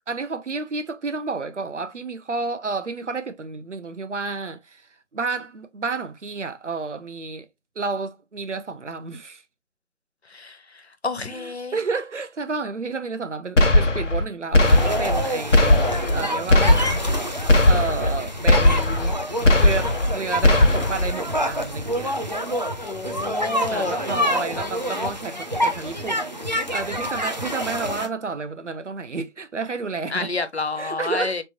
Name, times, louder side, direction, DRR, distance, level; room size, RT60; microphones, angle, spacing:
voice 1, 0.1-7.5 7.8-9.4 11.3-17.0 17.6-22.2 23.6-30.3 30.8-31.4, right 4 dB, 75° right, 0.9 m, -31 dB
voice 2, 10.3-11.8 22.8-24.0 30.1-31.4, left 3 dB, 60° left, 0.8 m, -29 dB
sound 1, 13.6-14.2 14.5-15.2 15.5-16.2 16.5-17.2 17.5-18.2 18.5-19.2 19.5-20.1 20.4-21.1, left 2 dB, 80° left, 1.0 m, -18 dB
sound 2, 14.6-28.1, equal, 35° right, 0.5 m, -27 dB
3.9 x 3.4 x 2.8 m
figure-of-eight pair, 170°, 37 cm